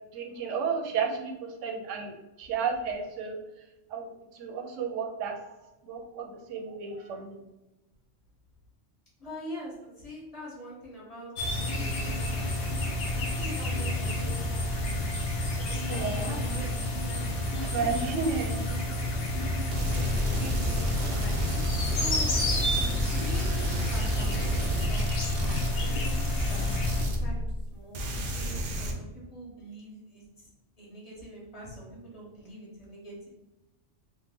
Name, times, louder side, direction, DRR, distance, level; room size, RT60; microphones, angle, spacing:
voice 1, 0.1-1.3 1.6-2.1 2.4-3.4 3.9-4.1 4.3-5.4 5.8-7.4 15.9-16.3 17.5-18.6 25.4-25.6, right 5 dB, 80° right, 3 dB, 0.9 m, -32 dB
voice 2, 9.2-15.1 15.3-18.0 18.7-19.1 19.4-22.3 23.0-30.5 30.8-33.3, equal, 30° left, -5 dB, 1.2 m, -44 dB
sound 1, 11.4-27.1, left 1 dB, 60° left, 0.8 m, -30 dB
sound 2, 19.7-27.7 27.9-28.9, equal, 60° right, 0.6 m, -30 dB
3.3 x 2.1 x 3.5 m, 1.0 s
omnidirectional pair, 1.3 m